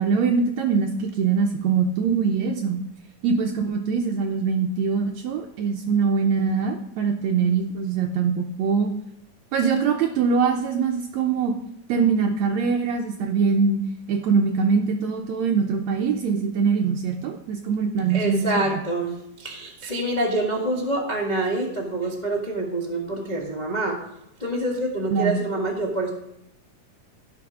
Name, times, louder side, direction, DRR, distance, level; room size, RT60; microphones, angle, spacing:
voice 1, 0.0-2.8 3.2-8.9 9.5-11.5 11.9-13.8 14.1-18.5 25.1-25.4, right 5 dB, 70° right, 3 dB, 1.7 m, -23 dB
voice 2, 18.1-24.0 24.4-26.1, right 2 dB, 30° left, -1 dB, 0.8 m, -26 dB
16.5 x 6.1 x 5.0 m, 0.82 s
omnidirectional pair, 3.9 m